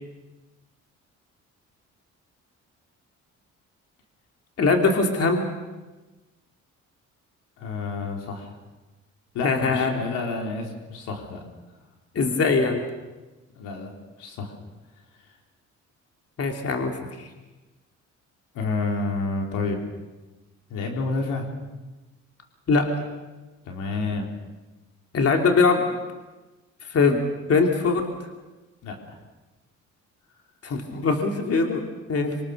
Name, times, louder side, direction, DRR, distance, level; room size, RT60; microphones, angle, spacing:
voice 1, 4.6-5.4 9.4-10.0 12.1-12.8 16.4-17.3 22.7-22.9 25.1-25.9 26.9-28.1 30.6-32.4, left 4 dB, 50° left, 3 dB, 3.0 m, -22 dB
voice 2, 7.6-8.5 9.3-11.4 13.6-13.9 14.2-14.5 18.5-19.8 20.7-21.5 23.6-24.3 28.8-29.2, left 3 dB, 85° left, 2 dB, 4.0 m, -29 dB
25.0 x 24.0 x 6.6 m, 1.2 s
cardioid pair, 90°, 30 cm